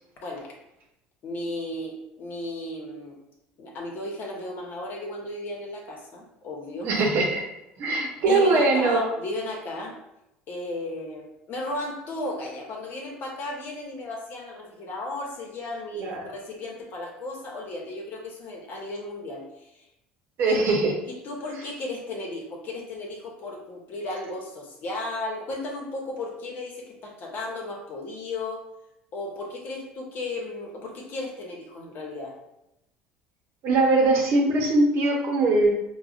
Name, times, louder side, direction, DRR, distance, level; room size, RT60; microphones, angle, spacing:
voice 1, 0.2-0.5 1.2-3.2 3.6-6.9 8.3-9.9 10.5-19.8 20.4-20.8 21.1-28.6 29.1-32.3, left 2 dB, 50° left, -1 dB, 1.0 m, -35 dB
voice 2, 6.8-7.4 7.8-9.1 15.9-16.3 20.4-21.0 33.6-35.7, right 2 dB, 60° right, 1 dB, 0.8 m, -21 dB
4.8 x 2.3 x 2.4 m, 0.86 s
hypercardioid pair, 80°, 4 cm